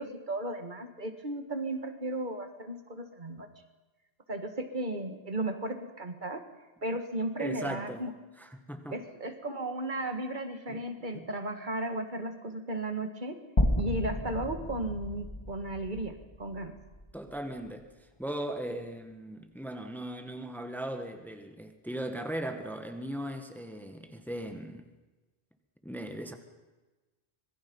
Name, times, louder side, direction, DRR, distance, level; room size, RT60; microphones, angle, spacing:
voice 1, 0.0-3.5 4.3-6.4 6.8-8.1 8.9-13.4 13.8-16.7, right 1 dB, 50° right, 2.1 m, -35 dB
voice 2, 7.4-8.0 8.4-9.0 10.7-10.8 11.1-11.3 17.1-17.9 18.2-24.9 25.8-26.3, right 1 dB, ahead, 1.6 m, -38 dB
sound 1, 13.6-17.8, left 1 dB, 25° left, 1.9 m, -32 dB
25.5 x 21.5 x 5.6 m
omnidirectional pair, 1.1 m